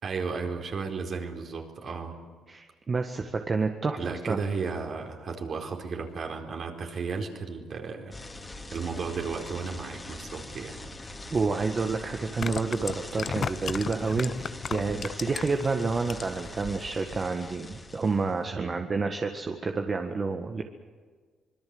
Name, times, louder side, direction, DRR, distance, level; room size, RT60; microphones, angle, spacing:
voice 1, 0.0-2.1 4.0-8.1 8.7-10.8 18.5-18.9, right 5 dB, 55° right, 3 dB, 4.5 m, -34 dB
voice 2, 2.5-4.4 11.3-14.3 14.7-20.6, right 4 dB, 35° right, 4 dB, 1.7 m, -29 dB
sound 1, 8.1-18.4, left 2 dB, 20° left, 3.0 m, -43 dB
sound 2, 11.2-11.3 12.2-15.6 16.0-16.5 16.8-16.9, left 6 dB, 50° left, 0.9 m, -34 dB
25.5 x 22.0 x 7.9 m, 1.6 s
cardioid pair, 90°, 0 cm